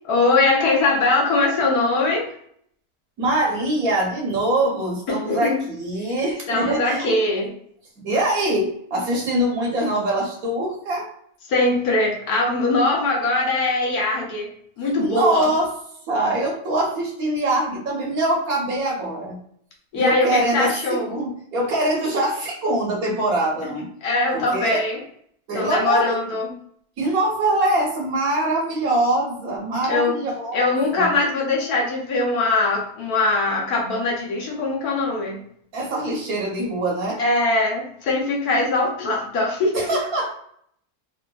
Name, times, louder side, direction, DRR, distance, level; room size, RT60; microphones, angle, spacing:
voice 1, 0.1-2.3 5.3-5.6 6.5-7.5 11.5-14.5 14.8-15.5 19.9-21.0 24.0-25.0 25.5-26.5 29.9-30.1 30.5-35.4 37.2-39.8, left 2 dB, 70° left, -1 dB, 1.3 m, -21 dB
voice 2, 3.2-7.2 8.0-11.1 14.8-15.7 16.1-19.4 19.9-23.9 24.3-24.8 25.5-26.2 27.0-31.1 35.7-37.2 39.7-40.3, right 1 dB, 65° right, -2 dB, 1.4 m, -23 dB
3.4 x 2.7 x 2.3 m, 0.65 s
omnidirectional pair, 1.7 m